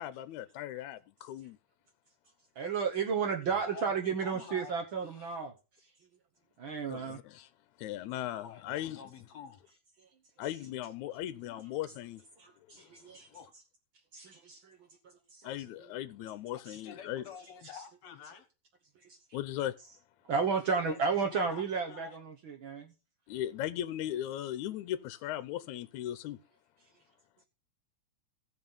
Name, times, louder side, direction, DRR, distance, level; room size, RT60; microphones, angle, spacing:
voice 1, 0.0-1.6 6.9-7.5 7.8-9.0 10.4-12.2 12.7-12.9 15.4-17.2 19.3-19.8 23.3-26.4, left 12 dB, 80° left, 2.1 m, -38 dB
voice 2, 2.5-5.9 6.6-7.2 10.0-10.1 12.4-13.3 14.1-15.5 15.8-15.9 16.7-16.8 18.9-19.4 20.2-22.9, right 5 dB, 55° right, 1.5 m, -33 dB
voice 3, 3.4-4.8 5.1-5.4 8.3-9.8 10.7-10.8 11.4-11.6 13.3-13.5 14.3-14.4 16.6-18.5 20.9-22.2, left 7 dB, 65° left, 2.3 m, -49 dB
16.0 x 5.6 x 5.4 m
omnidirectional pair, 3.4 m